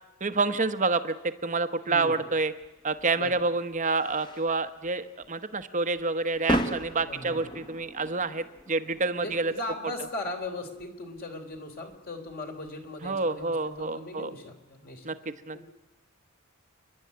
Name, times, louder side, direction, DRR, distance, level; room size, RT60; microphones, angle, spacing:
voice 1, 0.2-1.1 1.4-2.5 2.8-9.5 13.0-14.3 15.0-15.1 15.5-15.6, right 3 dB, 35° right, 10 dB, 1.0 m, -28 dB
voice 2, 1.9-2.2 3.1-3.4 7.1-7.5 9.2-15.7, left 2 dB, 45° left, 4 dB, 3.5 m, -39 dB
sound 1, 2.6-13.9, equal, 20° left, 1.5 m, -38 dB
30.0 x 11.5 x 9.6 m, 1.1 s
head